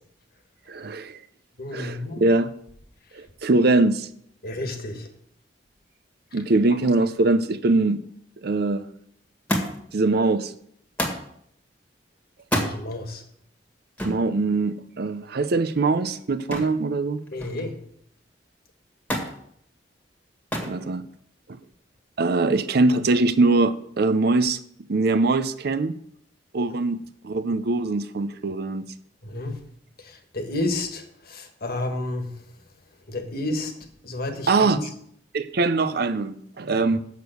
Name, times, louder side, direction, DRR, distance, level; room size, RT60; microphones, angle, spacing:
voice 1, 0.7-1.2 1.7-2.5 3.1-4.1 6.3-8.0 8.4-8.8 9.9-10.5 14.0-17.2 20.7-21.0 22.2-24.6 24.9-25.9 26.5-28.9 34.5-34.8 35.3-37.0, right 3 dB, 60° right, 0.6 m, -22 dB
voice 2, 1.6-2.2 4.4-5.1 12.6-13.2 17.3-17.8 29.2-29.6 30.0-32.3 33.1-33.7 34.0-34.8 36.7-36.9, left 2 dB, 55° left, 1.5 m, -31 dB
Thump thud, 9.5-10.0 11.0-11.3 12.4-12.8 14.0-14.2 16.5-16.8 17.2-17.7 19.1-19.4 20.5-20.8 21.7-22.2 23.2-23.3, equal, 10° left, 1.7 m, -28 dB
7.0 x 6.6 x 7.9 m
head